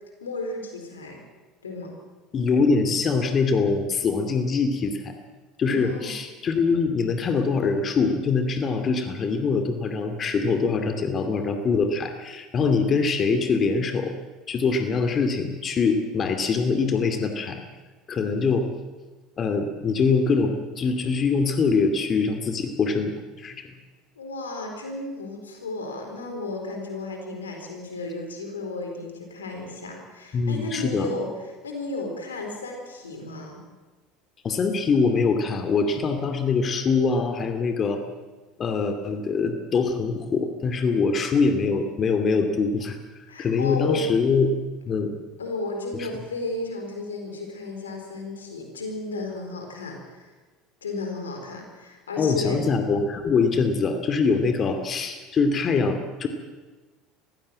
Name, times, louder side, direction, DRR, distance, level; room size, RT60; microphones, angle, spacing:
voice 1, 0.2-1.2 1.6-1.9 5.7-6.1 24.2-33.6 43.3-44.1 45.4-50.3 50.8-52.6, left 2 dB, 90° left, 3 dB, 4.2 m, -33 dB
voice 2, 2.3-5.1 5.6-14.1 14.5-17.6 18.1-18.7 19.4-23.1 23.4-23.6 30.3-31.1 34.4-38.0 38.6-43.0 43.4-44.6 44.9-45.1 46.0-46.1 52.2-56.3, left 4 dB, 40° left, 6 dB, 2.5 m, -23 dB
22.5 x 16.0 x 7.7 m, 1.3 s
hypercardioid pair, 75°, 0 cm